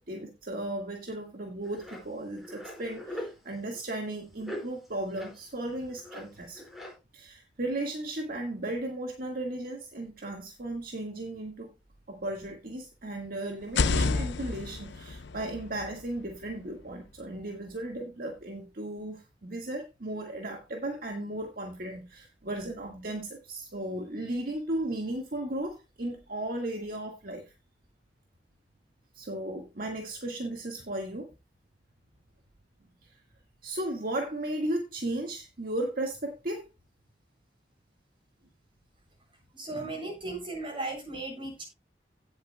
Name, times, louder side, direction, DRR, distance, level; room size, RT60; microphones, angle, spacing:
voice 1, 0.0-6.6 7.1-11.7 12.1-27.5 29.1-31.3 33.0-33.2 33.6-36.7 39.7-39.9 40.2-40.4, right 1 dB, 55° right, 2 dB, 1.7 m, -35 dB
sound 1, 1.6-3.3 3.7-3.8 4.1-4.2 4.4-5.4 5.7-6.9, left 1 dB, ahead, 4.7 m, -41 dB
sound 2, 13.6-17.4, left 4 dB, 80° left, 0.6 m, -31 dB
voice 2, 39.5-41.6, right 2 dB, 30° right, 0 dB, 7.2 m, -36 dB
17.0 x 8.0 x 2.2 m, 0.26 s
head